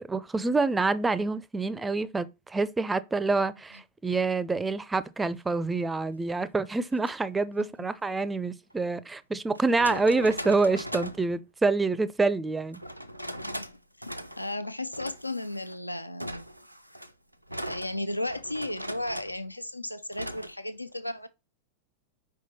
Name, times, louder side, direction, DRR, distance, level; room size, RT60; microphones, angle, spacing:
voice 1, 0.0-12.8, right 3 dB, 10° right, 0.4 m, -27 dB
sound 1, 6.9-7.1 8.7-8.8 9.5-11.3 12.7-13.7 14.0-14.6 14.9-15.8 16.2-19.4 20.1-20.5, equal, 90° right, 0.5 m, -39 dB
voice 2, 13.4-16.5 17.6-21.3, left 1 dB, 85° left, 0.3 m, -35 dB
5.7 x 4.7 x 4.2 m
figure-of-eight pair, 90°, 0 cm